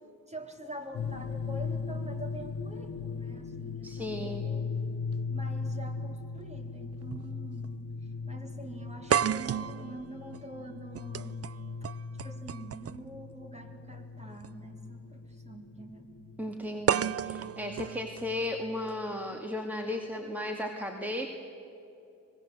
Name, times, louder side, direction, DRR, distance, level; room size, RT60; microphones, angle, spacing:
voice 1, 0.3-4.7 5.3-7.7 8.0-11.4 11.8-16.1, right 1 dB, 20° right, 3 dB, 3.7 m, -46 dB
sound 1, 0.9-19.2, left 4 dB, 70° left, 1.0 m, -39 dB
voice 2, 3.8-4.5 16.4-21.3, left 1 dB, 5° right, 2 dB, 2.2 m, -35 dB
sound 2, 5.9-6.0 7.1-7.3 7.6-7.7 9.1-13.1 14.3-14.5 16.9-18.9, right 9 dB, 50° right, 0.5 m, -32 dB
25.0 x 20.5 x 8.0 m, 2.8 s
cardioid pair, 60°, 32 cm